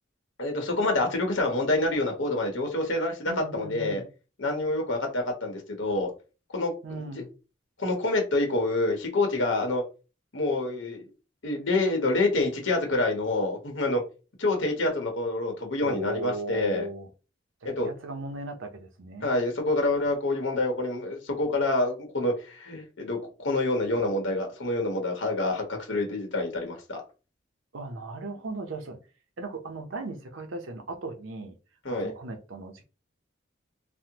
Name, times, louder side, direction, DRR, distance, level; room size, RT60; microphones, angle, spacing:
voice 1, 0.4-4.0 4.4-6.1 6.5-7.2 7.8-9.8 10.3-11.0 11.4-14.0 14.4-16.9 17.6-17.9 19.2-27.0 31.8-32.1, left 2 dB, 80° left, 1.0 m, -27 dB
voice 2, 3.3-4.1 6.8-7.3 15.8-17.1 17.6-19.3 27.7-29.0 29.4-31.6 31.9-32.8, right 2 dB, 90° right, 0.6 m, -37 dB
3.4 x 2.1 x 2.8 m
head